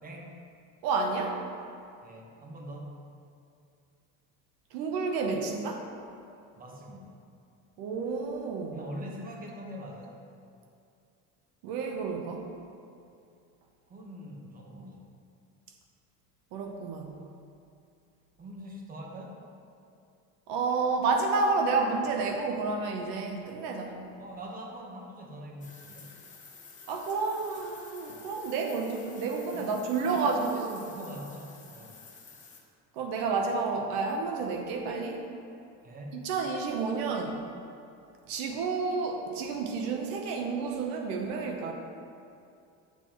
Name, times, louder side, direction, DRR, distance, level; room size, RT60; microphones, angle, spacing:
voice 1, 0.0-0.3 2.0-3.0 6.5-7.2 8.7-10.2 13.9-15.1 18.4-19.4 24.2-26.2 29.5-32.0 35.8-36.3, equal, 25° right, 0 dB, 1.2 m, -43 dB
voice 2, 0.8-1.4 4.7-5.9 7.8-8.8 11.6-12.5 16.5-17.2 20.5-24.0 26.9-30.9 32.9-35.3 36.1-37.4 38.3-41.7, right 4 dB, 80° right, 3 dB, 0.9 m, -30 dB
sound 1, 25.6-32.6, left 4 dB, 20° left, 1.2 m, -51 dB
10.5 x 6.9 x 3.0 m, 2.5 s
cardioid pair, 130°, 34 cm